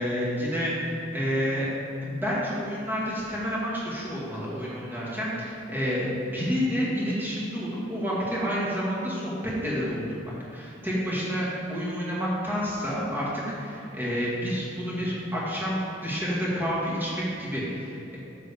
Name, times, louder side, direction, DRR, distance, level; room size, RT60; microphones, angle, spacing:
voice 1, 0.0-1.7 2.0-18.2, equal, 10° right, -7 dB, 1.9 m, -29 dB
9.2 x 6.9 x 3.6 m, 2.5 s
head